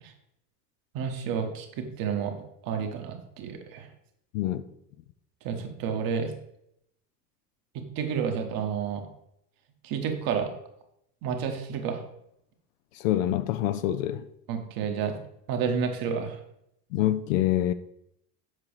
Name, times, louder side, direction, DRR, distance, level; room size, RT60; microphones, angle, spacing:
voice 1, 0.9-3.9 5.4-6.3 8.0-9.0 9.8-10.5 11.2-12.0 14.5-15.1 15.5-16.4, right 6 dB, 45° right, 1.2 m, -30 dB
voice 2, 12.9-14.2 16.9-17.7, left 13 dB, 55° left, 0.5 m, -26 dB
7.7 x 5.7 x 3.2 m
figure-of-eight pair, 65°, 49 cm